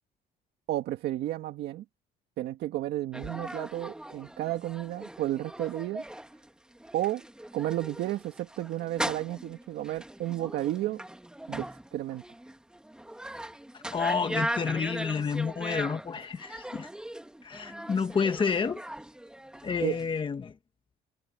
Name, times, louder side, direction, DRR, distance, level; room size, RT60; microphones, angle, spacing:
voice 1, 0.7-1.8 2.4-6.0 6.9-7.2 7.5-11.0 11.5-12.2 19.8-20.0, right 14 dB, 75° right, 1.8 m, -32 dB
sound 1, 3.1-20.2, right 1 dB, 5° right, 1.7 m, -39 dB
voice 2, 13.7-16.9 17.4-18.8 19.6-20.5, left 5 dB, 30° left, 1.3 m, -30 dB
cardioid pair, 110°, 17 cm